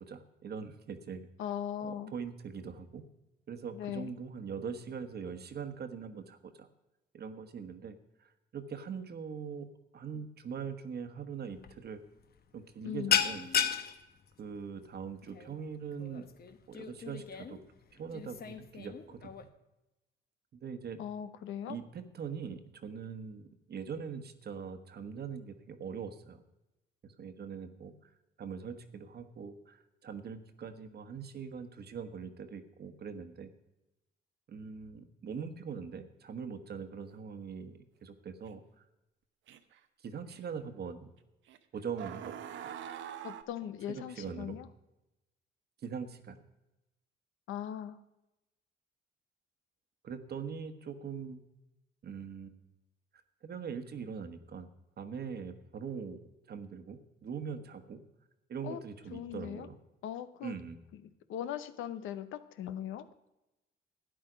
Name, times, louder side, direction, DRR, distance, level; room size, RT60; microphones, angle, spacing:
voice 1, 0.0-1.3 1.8-3.0 3.5-6.7 7.1-9.7 9.9-12.0 12.5-13.5 14.4-16.3 16.7-17.6 17.9-19.3 20.5-21.0 21.7-26.4 27.0-28.1 28.4-33.5 34.5-38.8 40.0-41.1 41.7-42.2 42.6-42.7 43.9-44.6 45.8-46.4 50.0-51.4 52.0-52.6 53.4-54.7 55.0-58.0 58.5-59.8 60.4-60.8, right 6 dB, 55° right, 9 dB, 1.2 m, -42 dB
voice 2, 1.4-2.1 3.7-4.1 12.8-13.2 21.0-21.8 43.2-44.7 47.5-48.0 58.6-58.8 59.1-59.7 60.0-60.5 60.9-61.0 61.3-63.1, left 10 dB, 85° left, 11 dB, 0.8 m, -39 dB
sound 1, 11.5-11.7 12.0-12.3 12.6-19.5, left 8 dB, 50° left, 1.0 m, -35 dB
sound 2, 38.5-38.6 39.5-39.8 40.3-40.4 41.5-41.6 42.0-43.4, right 9 dB, 75° right, 0.8 m, -43 dB
12.5 x 9.4 x 5.1 m, 0.96 s
cardioid pair, 90°, 20 cm